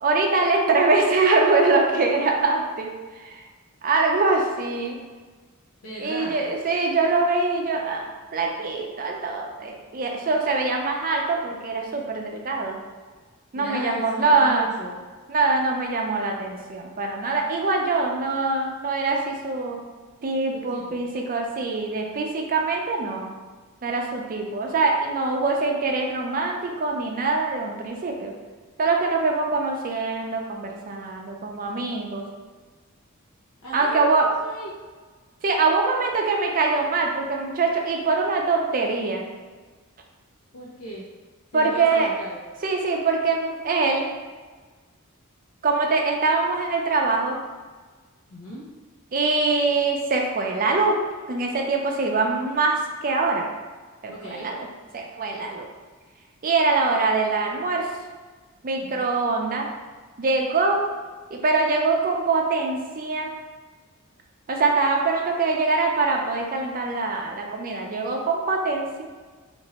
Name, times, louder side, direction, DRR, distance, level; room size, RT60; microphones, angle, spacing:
voice 1, 0.0-3.4 3.8-5.0 6.0-8.0 8.3-12.8 13.5-14.7 15.3-19.8 20.2-23.3 23.8-28.3 28.8-32.2 33.7-34.3 35.4-39.2 41.5-42.1 42.6-44.1 45.6-47.4 49.1-51.0 51.3-53.4 54.0-54.7 54.9-55.7 56.4-57.9 58.6-59.7 60.2-60.9 61.3-63.3 64.5-69.0, right 3 dB, 40° right, 1 dB, 0.5 m, -23 dB
voice 2, 5.8-6.4 13.5-15.0 20.5-21.0 33.6-34.8 40.5-41.0 41.5-42.4 48.3-48.7 54.1-54.5 58.8-59.1, right 1 dB, 85° left, -6 dB, 0.7 m, -37 dB
2.9 x 2.6 x 4.2 m, 1.4 s
head